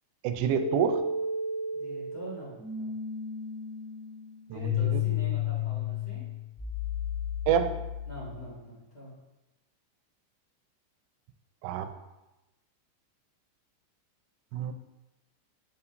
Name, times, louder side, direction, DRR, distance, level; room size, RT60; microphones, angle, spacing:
voice 1, 0.2-1.0 4.5-5.0 7.5-7.8 11.6-11.9 14.5-14.7, right 8 dB, 90° right, 8 dB, 3.2 m, -28 dB
sound 1, 0.6-8.5, left 6 dB, 80° left, 4.3 m, -33 dB
voice 2, 1.7-2.9 4.5-6.2 8.1-9.1, equal, 45° left, -7 dB, 0.4 m, -44 dB
11.0 x 5.7 x 2.6 m, 1.0 s
omnidirectional pair, 5.6 m